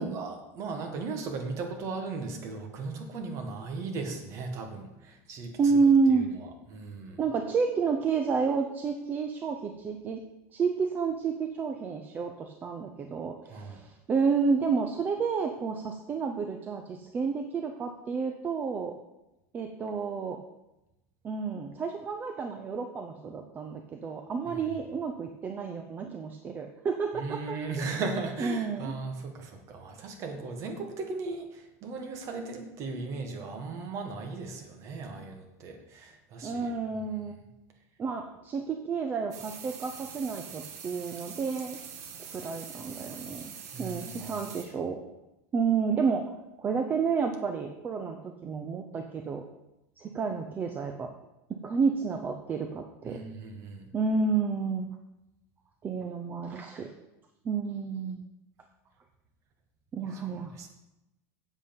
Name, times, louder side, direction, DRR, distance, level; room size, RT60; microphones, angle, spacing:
voice 1, 0.0-5.8 6.1-7.2 13.5-13.8 24.4-24.6 27.1-36.7 43.7-44.4 53.0-53.9 60.1-60.7, right 3 dB, 40° right, 4 dB, 1.7 m, -37 dB
voice 2, 5.6-6.3 7.2-10.2 10.5-18.9 19.5-20.4 21.2-27.9 28.4-28.9 36.4-37.3 38.0-41.8 42.2-45.0 45.5-46.3 46.6-49.4 50.0-51.1 51.6-53.2 53.9-54.9 55.8-56.9 57.4-58.2 59.9-60.5, right 5 dB, 25° right, 5 dB, 0.7 m, -30 dB
sound 1, 39.3-44.7, right 7 dB, 90° right, 1.6 m, -44 dB
8.2 x 7.9 x 5.3 m, 0.95 s
supercardioid pair, 150°, 8 cm